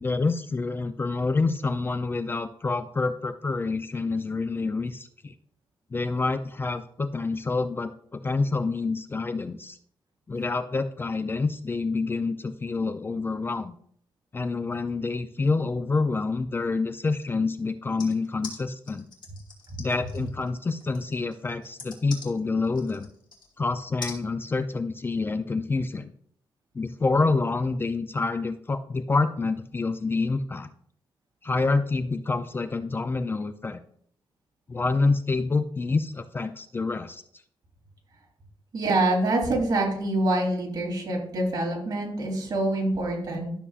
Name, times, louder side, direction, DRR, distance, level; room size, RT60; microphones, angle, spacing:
voice 1, 0.0-5.3 5.9-9.8 10.3-13.7 14.3-19.1 19.8-23.1 23.6-26.1 26.7-30.7 31.4-33.8 34.7-37.2, left 3 dB, 25° left, 9 dB, 0.4 m, -27 dB
sound 1, 18.0-23.5 24.0-24.2, left 4 dB, 60° left, 2.1 m, -42 dB
voice 2, 38.7-43.5, right 2 dB, 50° right, -1 dB, 3.1 m, -26 dB
12.0 x 6.8 x 2.4 m, 0.63 s
wide cardioid pair, 130°, 9 cm